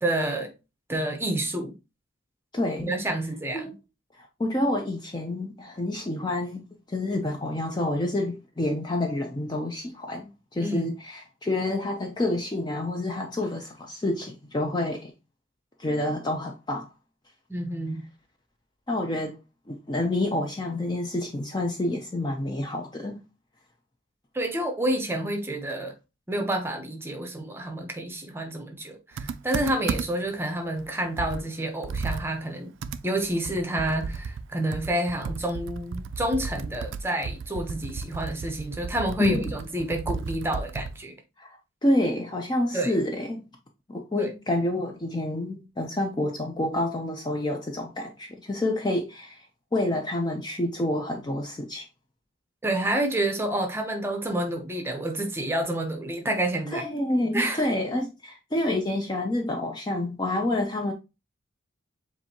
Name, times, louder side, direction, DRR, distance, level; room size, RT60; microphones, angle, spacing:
voice 1, 0.0-0.5 0.9-1.7 2.8-3.7 10.6-10.9 17.5-18.1 24.3-25.9 26.3-32.7 33.0-41.1 42.7-43.0 44.2-44.3 52.6-56.8 57.3-57.6, right 1 dB, 10° right, 0.7 m, -29 dB
voice 2, 2.5-2.9 3.5-3.7 4.2-15.1 15.8-16.9 18.9-19.4 19.7-23.2 39.2-39.5 41.4-43.5 43.9-49.5 49.7-51.9 56.7-60.9, left 1 dB, 20° left, 0.4 m, -28 dB
Computer keyboard, 29.2-30.3 30.8-30.9 31.2-41.0, right 4 dB, 70° right, 0.3 m, -34 dB
7.2 x 2.6 x 2.8 m
head